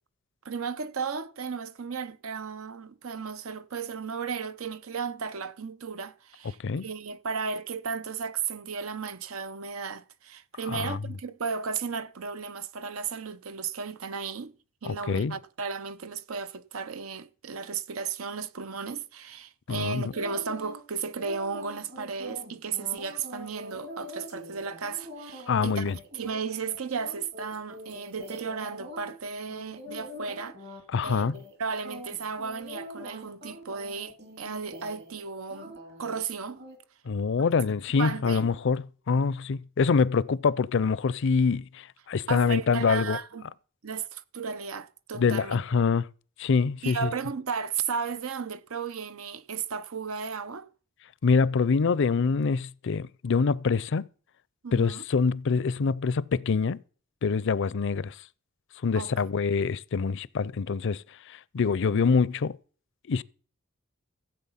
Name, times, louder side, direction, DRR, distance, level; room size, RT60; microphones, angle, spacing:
voice 1, 0.4-14.5 14.8-30.6 31.0-36.6 38.0-38.5 42.3-43.4 43.8-45.6 46.8-50.7 54.6-55.0 58.9-59.1, right 5 dB, 90° right, 0.8 m, -34 dB
voice 2, 10.7-11.0 14.8-15.4 19.7-20.1 25.5-26.0 30.9-31.4 37.1-43.2 45.1-46.1 46.4-47.1 51.2-54.1 54.7-56.8 57.2-58.1 58.8-62.6 63.1-63.2, left 5 dB, 60° left, 0.5 m, -25 dB
sound 1, 20.1-20.8 21.1-29.1 29.5-30.8 31.1-31.6 31.8-35.2 35.5-36.2 36.6-36.8, left 1 dB, 55° right, 3.3 m, -44 dB
15.5 x 7.9 x 5.7 m
head